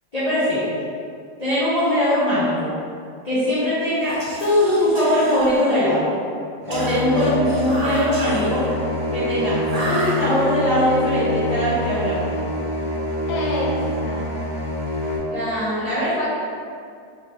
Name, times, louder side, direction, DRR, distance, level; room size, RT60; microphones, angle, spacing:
voice 1, 0.1-0.8 1.4-2.7 3.2-6.1 6.7-8.7 9.1-9.6 9.8-12.5 15.3-16.2, left 1 dB, 35° left, -12 dB, 0.7 m, -21 dB
Whispering, 4.0-6.0 6.7-8.7 9.6-10.7, right 1 dB, 90° right, 0.3 m, -33 dB
sound 1, 6.6-15.2, equal, 25° right, 0.8 m, -25 dB
voice 2, 13.3-14.4 16.2-16.3, left 2 dB, 65° left, -3 dB, 1.1 m, -28 dB
3.8 x 3.1 x 3.3 m, 2.3 s
omnidirectional pair, 1.9 m